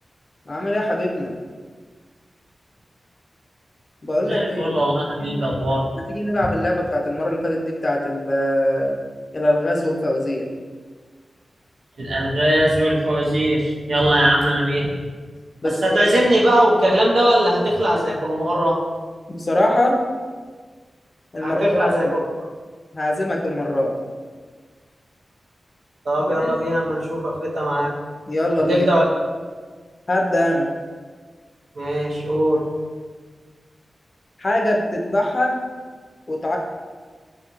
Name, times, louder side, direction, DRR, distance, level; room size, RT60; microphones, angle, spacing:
voice 1, 0.5-1.3 4.0-4.7 5.3-5.4 6.1-9.0 9.3-10.5 15.6-16.0 19.3-20.0 21.3-22.1 22.9-24.0 26.2-26.5 28.3-28.9 30.1-30.7 34.4-35.6 36.3-36.6, left 1 dB, 45° left, 0 dB, 0.5 m, -22 dB
voice 2, 4.3-5.9 12.0-14.9 15.6-18.8 21.4-22.2 26.0-27.9 28.7-29.0 31.8-32.6, equal, 85° right, -4 dB, 0.6 m, -20 dB
2.7 x 2.4 x 2.9 m, 1.5 s
cardioid pair, 60°, 0 cm